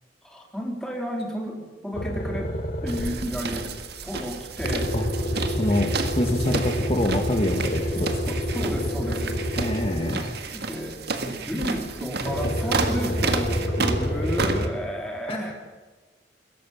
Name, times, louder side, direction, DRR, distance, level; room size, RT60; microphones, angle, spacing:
voice 1, 0.2-2.6 2.8-3.7 4.0-4.9 5.2-5.3 6.3-6.7 8.3-9.4 10.5-15.5, equal, 5° left, 0 dB, 3.6 m, -32 dB
sound 1, 1.9-3.4 4.6-10.4 12.2-14.7, equal, 50° left, 2.8 m, -28 dB
sound 2, 2.9-14.7, right 4 dB, 60° right, 1.8 m, -31 dB
voice 2, 5.5-8.2 9.6-10.3 15.3-15.4, left 1 dB, 30° left, 3 dB, 1.8 m, -26 dB
22.0 x 17.0 x 7.2 m, 1.3 s
head